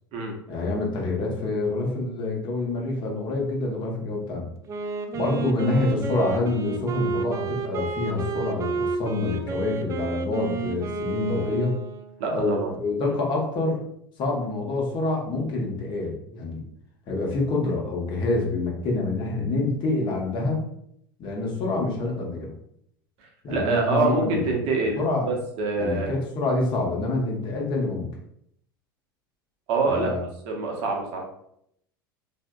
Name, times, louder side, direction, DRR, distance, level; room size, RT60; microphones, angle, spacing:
voice 1, 0.5-4.5 5.1-11.7 12.3-13.8 14.2-16.6 17.1-20.6 21.2-22.5 23.4-24.5 25.0-25.3 25.8-28.2 29.8-30.2, left 2 dB, 40° left, -1 dB, 0.9 m, -26 dB
Wind instrument woodwind instrument, 4.7-12.3, right 4 dB, 25° right, 0.4 m, -31 dB
voice 2, 12.2-12.7 23.2-26.1 29.7-30.1 30.4-31.2, right 3 dB, 50° right, 1 dB, 0.9 m, -26 dB
3.4 x 2.6 x 2.2 m, 0.73 s
figure-of-eight pair, 80°, 12 cm